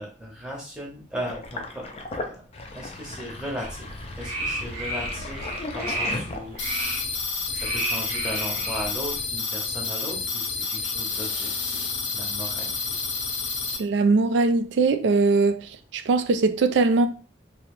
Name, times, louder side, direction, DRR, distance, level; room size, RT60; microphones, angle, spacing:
voice 1, 0.0-1.9 2.2-2.3 2.7-3.9 4.2-5.4 5.7-6.6 7.5-11.8 12.1-13.0, equal, 5° right, 0.7 m, -36 dB
Sink (filling or washing), 1.3-6.8, left 2 dB, 35° left, 0.3 m, -36 dB
sound 1, 3.6-9.2, right 1 dB, 45° right, 0.9 m, -33 dB
sound 2, 6.6-13.8, left 4 dB, 85° left, 0.6 m, -29 dB
voice 2, 13.8-17.1, right 3 dB, 80° right, 0.3 m, -21 dB
2.7 x 2.0 x 2.9 m
head